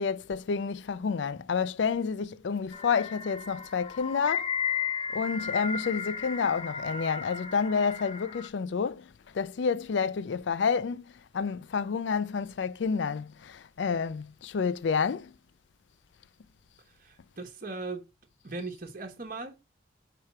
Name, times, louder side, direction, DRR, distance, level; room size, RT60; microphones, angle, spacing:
voice 1, 0.0-4.5 5.1-9.1 9.3-11.0 11.3-15.3, left 5 dB, 70° left, 0.4 m, -29 dB
sound 1, 2.7-8.5, left 7 dB, 35° left, 0.9 m, -34 dB
voice 2, 16.9-18.1 18.4-19.6, right 3 dB, 45° right, 1.1 m, -38 dB
5.0 x 4.3 x 5.8 m
head